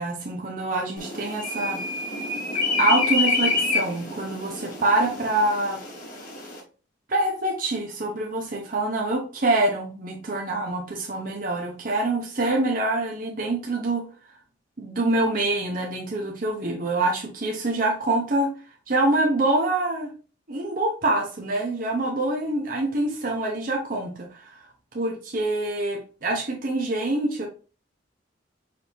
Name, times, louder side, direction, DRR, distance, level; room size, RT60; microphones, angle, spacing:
voice 1, 0.0-1.8 2.8-5.8 7.1-14.1 14.8-18.5 18.9-20.1 20.5-24.6 24.9-27.5, right 2 dB, 45° right, 0 dB, 0.8 m, -25 dB
sound 1, 1.0-6.6, left 3 dB, 45° left, 1.3 m, -27 dB
5.0 x 2.7 x 3.1 m, 0.35 s
head